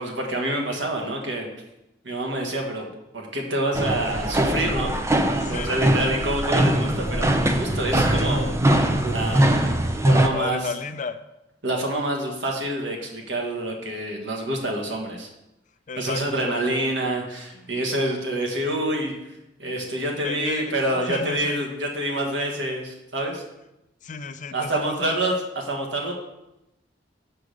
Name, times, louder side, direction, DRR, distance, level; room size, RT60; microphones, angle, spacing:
voice 1, 0.0-1.5 2.0-2.9 3.1-5.0 5.5-8.4 9.0-9.6 10.0-10.6 11.6-15.3 16.0-19.3 19.6-23.4 24.5-26.1, right 1 dB, 85° right, 1 dB, 1.6 m, -27 dB
sound 1, 3.7-10.3, right 1 dB, 15° right, 0.5 m, -21 dB
voice 2, 5.3-5.8 10.3-11.2 15.9-16.8 17.5-17.8 20.2-20.8 21.1-21.6 24.0-25.2, left 5 dB, 45° left, 11 dB, 0.5 m, -33 dB
6.2 x 4.9 x 6.5 m, 0.92 s
head